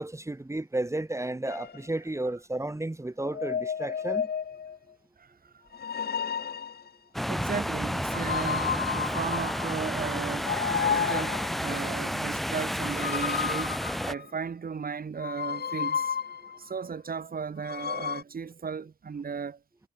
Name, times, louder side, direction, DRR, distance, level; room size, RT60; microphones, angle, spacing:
voice 1, 0.0-4.3, right 1 dB, 15° right, 2.3 m, -32 dB
sound 1, 1.5-1.8 3.2-4.8 5.7-6.9 8.1-9.8 10.4-11.6 12.8-14.4 15.2-16.6 17.6-18.2, left 7 dB, 65° left, 3.7 m, -32 dB
voice 2, 5.2-5.6 7.3-10.6 10.8-13.8 14.1-16.2 16.6-19.6, right 6 dB, 55° right, 6.1 m, -35 dB
sound 2, 7.1-14.1, equal, ahead, 1.4 m, -31 dB
cardioid pair, 60°, 18 cm